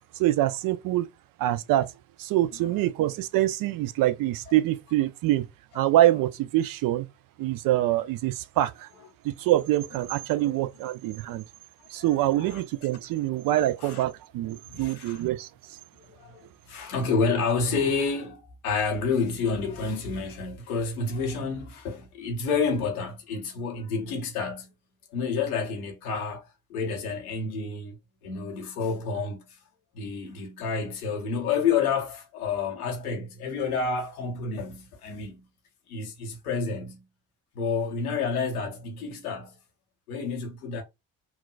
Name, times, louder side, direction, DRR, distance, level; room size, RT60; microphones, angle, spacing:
voice 1, 0.2-1.1 1.4-1.9 2.2-5.5 5.7-7.1 7.4-8.9 9.2-11.4 11.9-15.5, right 14 dB, 50° right, 0.5 m, -25 dB
voice 2, 11.9-12.6 13.8-14.0 14.6-15.2 16.0-24.7 25.1-28.0 28.2-29.6 29.9-35.4 35.9-37.0 37.5-39.6 40.1-40.8, left 5 dB, 80° left, 0.9 m, -29 dB
5.9 x 2.3 x 2.3 m
figure-of-eight pair, 40°, 43 cm